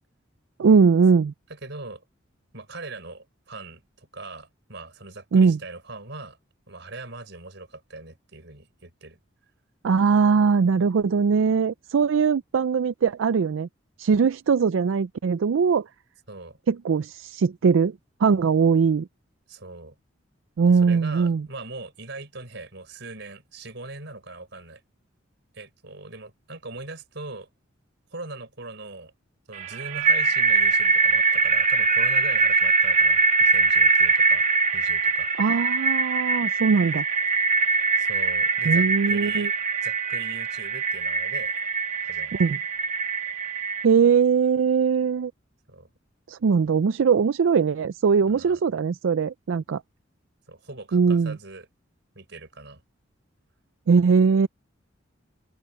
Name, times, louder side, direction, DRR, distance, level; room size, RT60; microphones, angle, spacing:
voice 1, 0.6-1.3 5.3-5.6 9.8-13.7 14.0-15.9 16.7-19.1 20.6-21.4 35.4-37.0 38.6-39.5 42.4-42.6 43.8-45.3 46.3-49.8 50.9-51.4 53.9-54.5, right 5 dB, 85° right, 0.4 m, -20 dB
voice 2, 1.5-2.0 2.5-6.4 6.7-9.2 16.3-16.6 19.5-19.9 20.7-24.8 25.5-27.5 28.1-29.1 29.5-34.5 34.7-35.3 38.0-39.5 39.8-41.5 42.0-42.3 45.7-45.9 48.3-48.6 50.5-51.7 52.1-52.8, right 3 dB, 65° right, 6.1 m, -41 dB
sound 1, 29.6-43.9, right 4 dB, 40° right, 1.5 m, -22 dB
open air
head